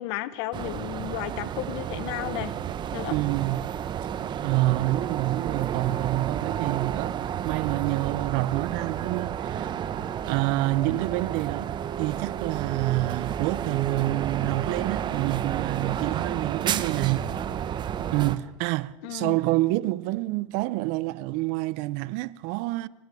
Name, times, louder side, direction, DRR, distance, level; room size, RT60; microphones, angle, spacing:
voice 1, 0.0-2.5 2.9-3.1 19.0-19.4, left 16 dB, 60° left, 1.3 m, -33 dB
sound 1, 0.5-18.4, right 9 dB, 30° right, 1.2 m, -31 dB
voice 2, 3.1-3.7 4.4-9.7 10.3-17.3 18.1-22.9, right 18 dB, 50° right, 0.8 m, -27 dB
28.0 x 14.0 x 8.5 m
supercardioid pair, 125°, 16 cm